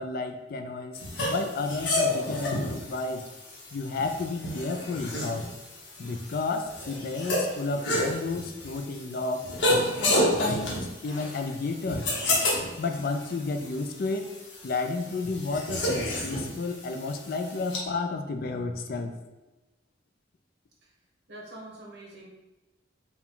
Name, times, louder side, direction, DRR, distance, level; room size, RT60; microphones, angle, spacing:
voice 1, 0.0-3.2 3.7-5.4 6.0-9.4 10.0-10.8 11.0-12.0 12.8-14.3 14.6-19.1, left 3 dB, 55° left, 5 dB, 0.4 m, -31 dB
sound 1, 1.0-17.8, left 1 dB, 80° left, 1.0 m, -30 dB
voice 2, 21.3-22.3, right 1 dB, 60° right, -3 dB, 1.1 m, -44 dB
4.6 x 2.3 x 3.7 m, 1.1 s
head